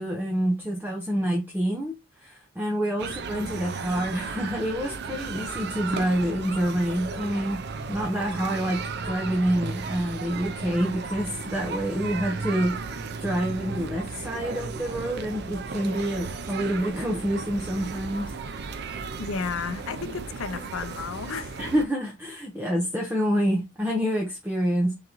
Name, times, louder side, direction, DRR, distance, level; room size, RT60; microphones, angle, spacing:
voice 1, 0.0-7.6 7.9-18.3 21.6-24.9, equal, 10° right, 0.7 m, -27 dB
sound 1, 3.0-21.8, right 4 dB, 50° right, 0.4 m, -35 dB
voice 2, 19.2-21.6, left 5 dB, 70° left, 0.5 m, -33 dB
3.9 x 3.7 x 2.9 m
head